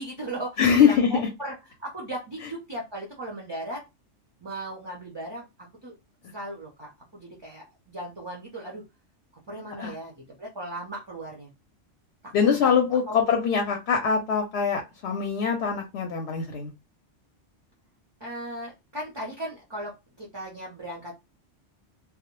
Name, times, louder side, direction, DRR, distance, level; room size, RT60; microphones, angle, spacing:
voice 1, 0.0-1.5 1.8-3.8 4.4-5.4 5.8-5.9 6.3-8.8 9.5-10.1 10.4-11.5 12.2-12.3 12.6-13.2 18.2-21.1, right 1 dB, 35° right, 0.4 m, -37 dB
voice 2, 0.6-1.3 9.8-9.9 12.3-16.7, left 7 dB, 65° left, 0.8 m, -23 dB
2.1 x 2.0 x 2.9 m
omnidirectional pair, 1.3 m